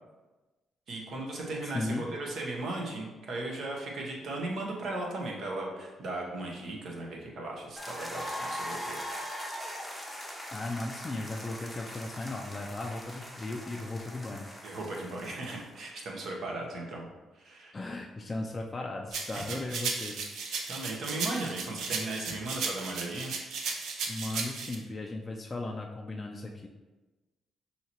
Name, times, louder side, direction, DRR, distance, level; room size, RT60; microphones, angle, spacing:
voice 1, 0.9-9.0 14.6-17.1 17.3-17.7 20.7-23.3, right 2 dB, 60° right, -1 dB, 0.9 m, -37 dB
voice 2, 1.7-2.1 10.5-14.5 17.7-20.2 20.5-20.9 24.1-26.7, left 2 dB, 25° left, 0 dB, 0.4 m, -36 dB
sound 1, 7.8-15.9, equal, ahead, 0.8 m, -41 dB
sound 2, 19.1-24.7, right 4 dB, 80° right, 0.5 m, -35 dB
5.6 x 2.8 x 2.9 m, 1.2 s
cardioid pair, 90°, 0 cm